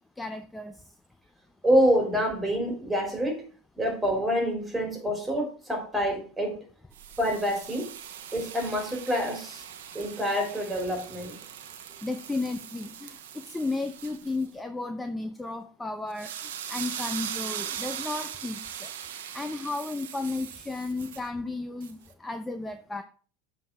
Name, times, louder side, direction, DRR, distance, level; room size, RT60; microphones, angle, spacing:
voice 1, 0.2-0.8 12.0-18.9 19.3-23.0, left 3 dB, 10° left, 9 dB, 0.6 m, -34 dB
voice 2, 1.6-3.4 3.8-6.7 7.2-7.9 8.3-9.7 9.9-11.4, equal, 10° right, 3 dB, 3.4 m, -27 dB
sound 1, 6.9-14.4 16.1-21.3 21.8-21.9, right 9 dB, 80° right, 1.0 m, -40 dB
7.4 x 4.0 x 6.0 m, 0.42 s
hypercardioid pair, 95°, 0 cm